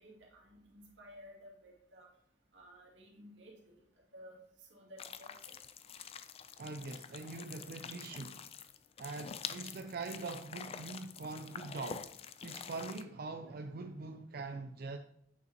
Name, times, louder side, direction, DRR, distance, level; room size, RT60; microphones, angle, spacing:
voice 1, 0.0-2.1 2.5-3.8 4.1-5.5, equal, 80° right, 2.3 m, -55 dB
sound 1, 5.0-13.0, left 7 dB, 35° left, 0.4 m, -47 dB
voice 2, 6.6-8.5 9.0-12.1 12.4-15.0, right 3 dB, 55° right, 0.4 m, -43 dB
8.3 x 6.6 x 2.9 m
head